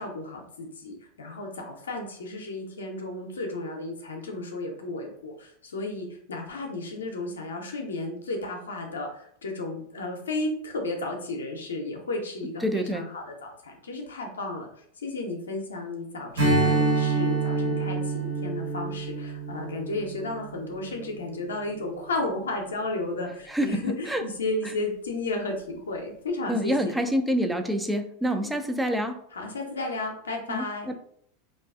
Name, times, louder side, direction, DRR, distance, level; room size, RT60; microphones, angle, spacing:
voice 1, 0.0-14.7 15.0-26.9 28.4-28.5 29.3-30.9, left 2 dB, 85° left, 2 dB, 0.5 m, -33 dB
voice 2, 12.6-13.1 23.5-24.2 26.5-29.2 30.5-30.9, equal, 5° right, 6 dB, 0.3 m, -27 dB
Strum, 16.4-21.1, right 2 dB, 80° right, 1.3 m, -27 dB
2.4 x 2.3 x 2.3 m, 0.64 s
hypercardioid pair, 90°, 0 cm